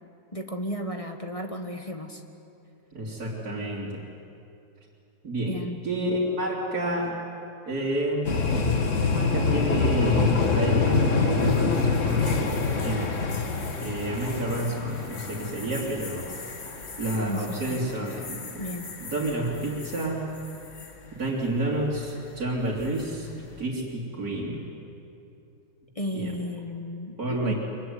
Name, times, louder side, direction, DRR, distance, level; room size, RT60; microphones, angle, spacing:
voice 1, 0.3-2.2 5.5-5.8 17.3-18.1 18.6-18.9 25.9-27.5, equal, 20° left, 4 dB, 1.5 m, -34 dB
voice 2, 2.9-4.0 5.2-7.2 7.7-8.4 9.0-12.4 12.8-13.1 13.8-16.3 17.0-18.7 19.0-20.2 21.1-24.7 26.1-26.3 27.2-27.5, right 1 dB, 45° right, -7 dB, 3.6 m, -29 dB
sound 1, 8.2-20.1 20.4-20.9 22.8-23.1, left 4 dB, 40° left, 1.8 m, -27 dB
24.5 x 24.0 x 9.6 m, 2.7 s
omnidirectional pair, 2.2 m